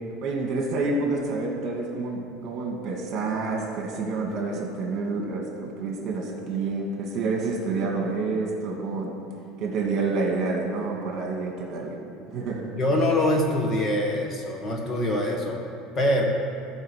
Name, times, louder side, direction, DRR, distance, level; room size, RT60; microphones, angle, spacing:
voice 1, 0.2-9.1 9.6-12.0 12.3-12.7, right 3 dB, 45° right, 0 dB, 2.0 m, -28 dB
voice 2, 12.8-15.6 15.9-16.2, left 1 dB, 30° left, 1 dB, 1.4 m, -24 dB
13.5 x 5.0 x 6.6 m, 2.6 s
cardioid pair, 150°, 0 cm